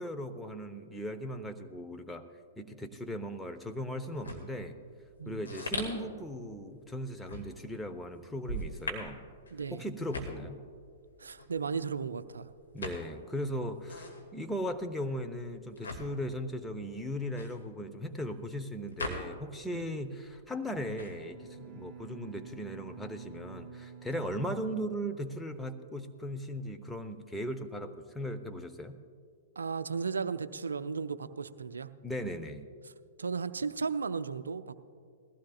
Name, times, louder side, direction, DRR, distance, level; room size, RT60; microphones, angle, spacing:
voice 1, 0.0-2.2 2.6-4.8 5.3-9.2 9.7-10.6 12.7-29.0 32.0-32.7, equal, 5° left, 5 dB, 0.8 m, -38 dB
sound 1, 4.1-19.8 20.0-21.6, left 1 dB, 80° left, 2.1 m, -42 dB
voice 2, 5.2-5.5 9.5-9.8 11.2-12.5 19.7-20.0 24.1-24.2 29.6-31.9 33.2-34.8, right 5 dB, 75° right, 13 dB, 0.5 m, -35 dB
Bowed string instrument, 21.0-25.7, right 5 dB, 10° right, 1.1 m, -49 dB
20.0 x 15.5 x 2.4 m, 2.2 s
figure-of-eight pair, 110°, 0 cm